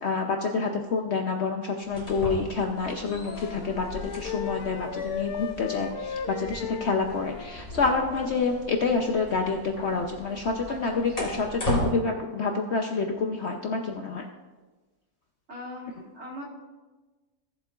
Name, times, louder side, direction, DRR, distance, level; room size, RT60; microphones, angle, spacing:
voice 1, 0.0-14.3, left 4 dB, 60° left, 3 dB, 0.8 m, -28 dB
sound 1, 1.8-11.9, equal, 35° left, 3.0 m, -37 dB
Wind instrument woodwind instrument, 3.0-8.5, left 7 dB, 75° left, 1.2 m, -36 dB
voice 2, 10.7-11.3 15.5-16.4, equal, 45° right, -3 dB, 2.2 m, -41 dB
17.0 x 7.4 x 2.4 m, 1.3 s
omnidirectional pair, 1.7 m